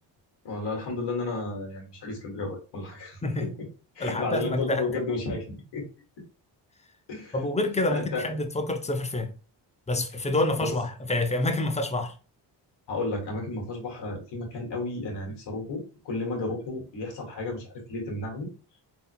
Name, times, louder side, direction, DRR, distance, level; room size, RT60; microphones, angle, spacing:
voice 1, 0.4-3.7 4.0-5.8 7.1-7.4 7.9-8.3 10.6-10.7 12.9-18.5, left 3 dB, 70° left, 2.1 m, -33 dB
voice 2, 4.0-4.8 7.3-9.3 9.9-12.1, left 2 dB, 15° left, 0.6 m, -27 dB
3.8 x 3.8 x 2.2 m
cardioid pair, 90°, 43 cm